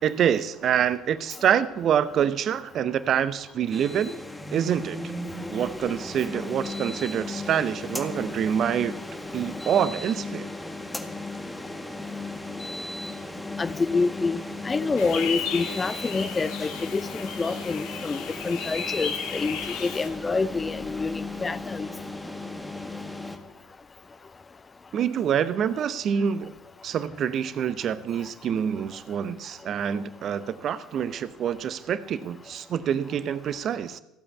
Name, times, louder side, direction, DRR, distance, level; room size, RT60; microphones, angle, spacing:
voice 1, 0.0-4.1 4.5-5.0 5.5-8.9 9.3-10.5 24.9-26.5 26.8-34.0, right 8 dB, 45° right, 0.8 m, -26 dB
sound 1, 3.7-23.4, left 2 dB, 5° left, 1.8 m, -36 dB
voice 2, 13.6-21.9, left 4 dB, 25° left, 0.6 m, -27 dB
sound 2, 15.0-20.1, left 7 dB, 60° left, 2.2 m, -35 dB
15.5 x 8.7 x 8.3 m
figure-of-eight pair, 65°, 0 cm